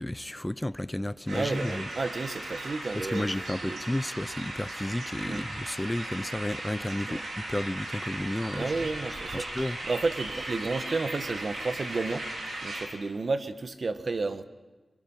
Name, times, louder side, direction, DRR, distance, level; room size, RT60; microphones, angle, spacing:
voice 1, 0.0-1.9 3.1-8.7 9.3-9.8, left 1 dB, 15° left, 0.6 m, -32 dB
voice 2, 1.3-3.8 5.2-5.4 7.1-7.2 8.5-9.6 9.8-12.3 12.6-14.4, right 3 dB, 60° right, 1.4 m, -32 dB
sound 1, 1.3-12.8, right 1 dB, 90° right, 5.2 m, -37 dB
24.0 x 24.0 x 5.7 m
wide cardioid pair, 65°, 0 cm